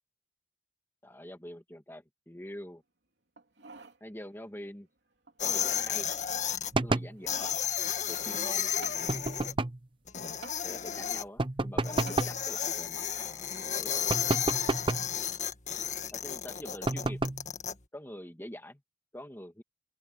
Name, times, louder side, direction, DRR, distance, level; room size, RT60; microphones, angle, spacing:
voice 1, 1.0-2.8 4.0-4.9 5.4-6.1 6.8-7.5 8.1-9.6 10.6-14.5 16.1-17.2 17.9-18.8 19.1-19.6, left 1 dB, 15° left, 2.3 m, -46 dB
sound 1, 3.4-4.0 4.4-4.5 5.3-5.8 6.8-7.6 8.8-9.0 10.4-10.6 12.1-12.3 12.9-13.0, right 4 dB, 70° right, 3.5 m, -48 dB
sound 2, 5.4-6.7 7.3-9.5 10.1-11.2 11.8-17.7, left 8 dB, 40° left, 1.8 m, -33 dB
sound 3, 6.7-7.2 9.1-9.9 11.4-12.4 14.1-15.1 16.9-17.5, right 2 dB, 30° right, 0.8 m, -30 dB
open air
head